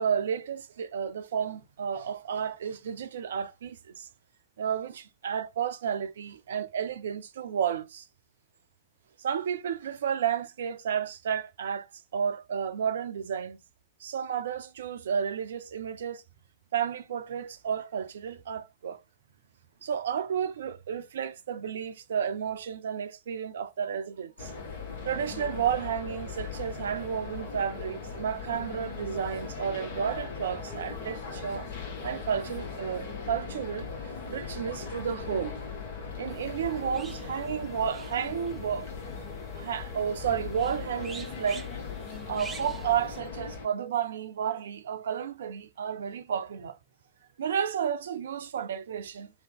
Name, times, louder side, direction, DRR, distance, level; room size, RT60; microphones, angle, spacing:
voice 1, 0.0-4.1 4.6-8.1 9.2-13.6 14.0-16.2 16.7-19.0 19.8-24.5 25.0-31.7 32.0-35.6 36.2-38.9 39.2-41.7 42.3-46.8 47.4-49.3, right 8 dB, 65° right, 0.4 m, -32 dB
sound 1, 24.4-43.7, left 5 dB, 55° left, 0.9 m, -39 dB
sound 2, 36.3-43.2, right 4 dB, 15° right, 0.6 m, -49 dB
2.8 x 2.2 x 3.4 m
figure-of-eight pair, 90°, 0 cm